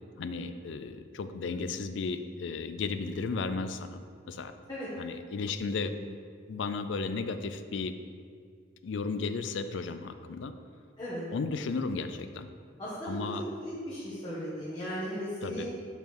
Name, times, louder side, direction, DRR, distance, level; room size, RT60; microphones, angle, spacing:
voice 1, 0.2-4.0 4.3-4.5 5.0-6.2 6.5-7.9 8.8-10.5 11.3-12.5 13.1-13.4 15.4-15.7, left 4 dB, 70° left, 10 dB, 0.4 m, -34 dB
voice 2, 12.8-13.2 13.6-15.6, equal, 25° left, -12 dB, 1.5 m, -36 dB
5.6 x 4.6 x 5.8 m, 2.1 s
head